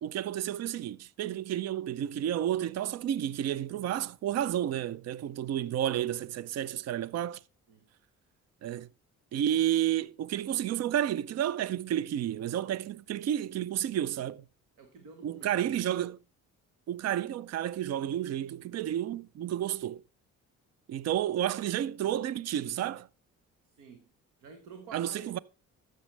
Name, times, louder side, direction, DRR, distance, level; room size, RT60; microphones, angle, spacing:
voice 1, 0.0-7.4 8.6-8.9 9.3-14.4 15.2-16.2 16.9-20.0 20.9-23.1 24.9-25.4, right 11 dB, 60° right, 0.5 m, -31 dB
voice 2, 14.8-15.8 23.6-24.1 24.4-25.4, right 6 dB, 90° right, 1.3 m, -49 dB
13.5 x 6.5 x 3.3 m
cardioid pair, 90°, 30 cm